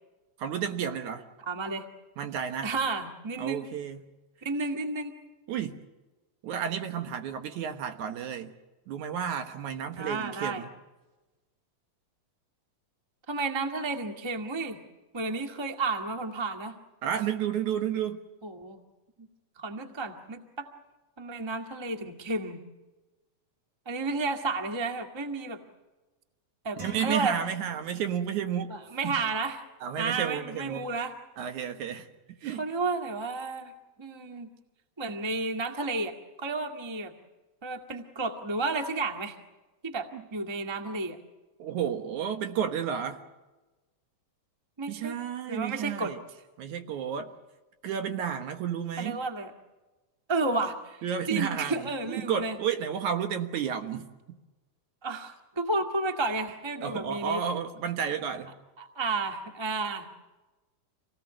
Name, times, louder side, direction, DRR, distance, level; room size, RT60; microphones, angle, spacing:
voice 1, 0.4-1.3 2.2-2.7 3.4-4.1 5.5-5.8 6.4-8.6 8.9-10.7 17.0-18.2 26.8-28.7 29.0-29.2 29.8-30.9 31.4-32.1 32.4-32.7 40.1-40.3 41.6-43.2 44.9-46.2 46.6-47.3 47.8-49.2 51.0-54.4 56.8-58.6, right 8 dB, 70° right, 7 dB, 2.7 m, -32 dB
voice 2, 1.5-1.8 2.6-3.6 4.4-5.1 10.0-10.6 13.3-14.8 15.1-16.7 18.4-18.8 19.2-19.3 19.6-20.7 21.2-22.6 23.8-25.6 26.6-27.4 28.7-29.6 30.0-31.1 32.6-33.7 34.0-34.5 35.0-36.1 36.4-37.1 37.6-39.3 39.8-41.2 44.8-45.1 45.5-46.1 49.0-49.5 50.3-51.0 51.3-52.6 55.0-57.4 58.8-60.1, right 3 dB, 10° right, 4 dB, 1.2 m, -32 dB
sound 1, 26.8-28.3, right 2 dB, 50° right, 4.2 m, -46 dB
27.0 x 18.5 x 7.7 m, 1.2 s
omnidirectional pair, 3.6 m